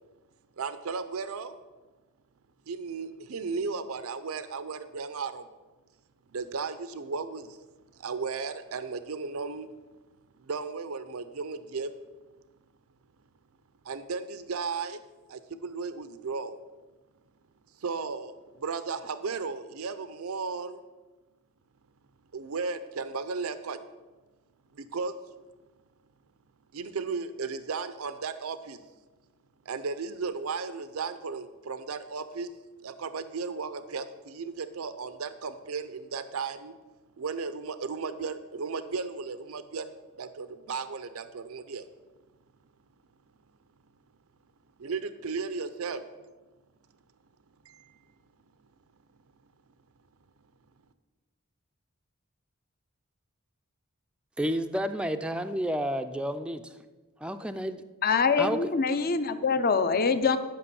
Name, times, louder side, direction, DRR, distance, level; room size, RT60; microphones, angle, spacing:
voice 1, 0.6-1.6 2.7-5.5 6.3-7.6 8.0-9.7 10.5-11.9 13.8-15.0 15.3-16.6 17.8-20.8 22.3-23.8 24.7-25.1 26.7-28.8 29.7-32.5 32.8-36.8 37.2-39.9 40.2-41.9 44.8-46.0 47.7-47.9, right 4 dB, 90° right, 12 dB, 0.6 m, -35 dB
voice 2, 54.4-56.8 57.2-57.8 58.4-58.7, equal, 5° right, 7 dB, 0.4 m, -30 dB
voice 3, 58.0-60.4, left 5 dB, 45° left, 11 dB, 0.6 m, -24 dB
11.0 x 5.9 x 6.9 m, 1.2 s
head